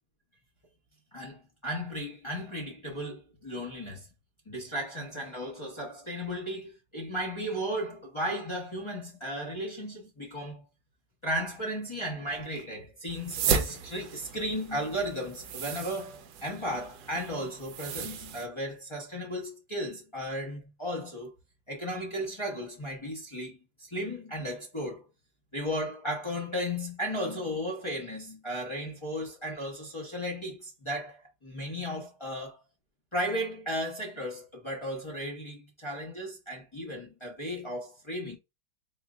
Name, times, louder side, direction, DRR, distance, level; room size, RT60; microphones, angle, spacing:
voice 1, 1.1-4.1 4.5-10.6 11.2-21.3 21.7-25.0 25.5-32.6 33.1-38.4, equal, 50° left, 0.3 m, -35 dB
sound 1, 13.1-18.5, right 7 dB, 70° right, 0.9 m, -35 dB
4.3 x 2.4 x 3.6 m
omnidirectional pair, 2.2 m